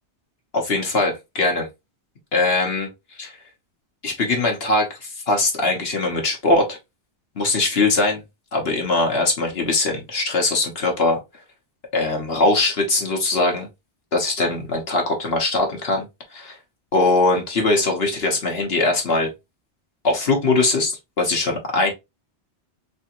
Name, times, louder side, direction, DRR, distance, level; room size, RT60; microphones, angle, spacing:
voice 1, 0.5-1.7 2.3-2.9 3.2-3.4 4.0-6.8 7.4-8.2 8.5-11.2 11.9-13.7 14.1-16.6 16.9-19.3 20.0-21.9, left 2 dB, 60° left, 1.2 m, -21 dB
3.5 x 3.3 x 2.9 m
omnidirectional pair, 1.2 m